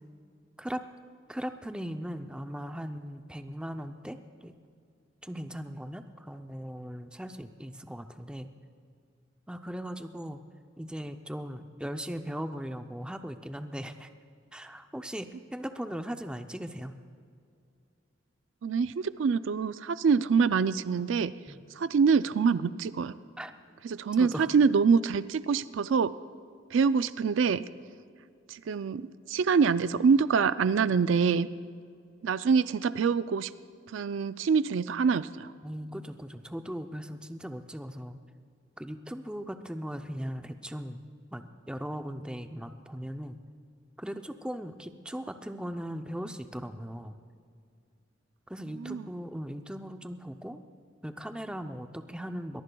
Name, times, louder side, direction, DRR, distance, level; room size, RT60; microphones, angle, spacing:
voice 1, 1.3-4.5 5.2-8.5 9.5-10.4 10.8-14.1 14.5-16.9 21.5-21.7 23.4-23.5 24.2-24.5 35.6-38.2 38.8-41.0 41.3-43.4 44.0-47.2 48.5-50.6 51.0-52.6, equal, 5° right, 7 dB, 0.5 m, -38 dB
voice 2, 18.6-21.3 21.8-23.1 23.9-26.1 26.7-27.6 28.5-31.5 32.2-33.5 33.9-35.5 48.8-49.1, right 5 dB, 80° right, 14 dB, 0.4 m, -25 dB
22.0 x 21.0 x 2.3 m, 2.3 s
head